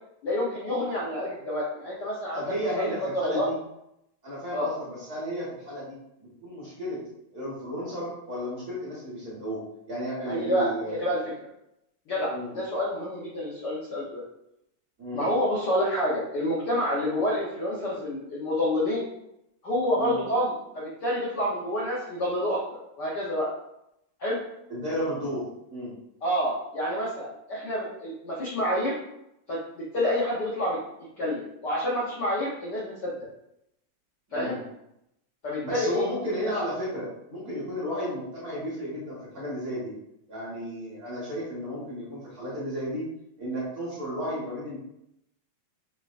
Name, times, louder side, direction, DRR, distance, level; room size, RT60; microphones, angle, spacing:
voice 1, 0.2-2.5 2.8-3.5 4.5-4.7 10.2-11.2 12.1-14.2 15.1-19.1 19.6-22.6 23.0-23.5 24.2-24.4 26.2-29.0 29.5-30.8 31.2-33.2 34.3-34.6 35.4-36.0 36.4-36.5, left 1 dB, 85° left, -6 dB, 0.9 m, -28 dB
voice 2, 2.3-3.5 4.2-6.0 6.4-7.0 7.3-9.6 9.9-11.0 12.3-12.5 15.0-15.2 19.9-20.2 24.7-25.9 34.3-34.6 35.6-39.9 40.3-43.0 43.4-44.8, equal, 40° right, -8 dB, 1.7 m, -33 dB
5.8 x 3.4 x 2.5 m, 0.81 s
omnidirectional pair, 3.3 m